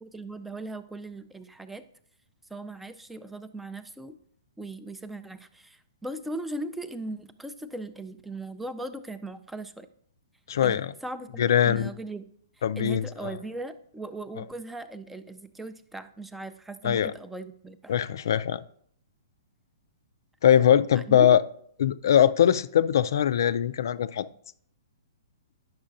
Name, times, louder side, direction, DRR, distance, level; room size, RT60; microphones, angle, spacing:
voice 1, 0.0-1.8 2.5-4.2 4.6-9.9 10.6-12.2 12.8-18.0 20.9-21.3, right 2 dB, 5° right, 11 dB, 0.4 m, -38 dB
voice 2, 10.5-10.9 11.4-11.9 12.6-13.3 16.8-17.1 17.9-18.6 20.4-21.4 21.8-24.3, left 9 dB, 65° left, 14 dB, 0.3 m, -21 dB
10.0 x 6.2 x 2.5 m, 0.64 s
hypercardioid pair, 120°, 2 cm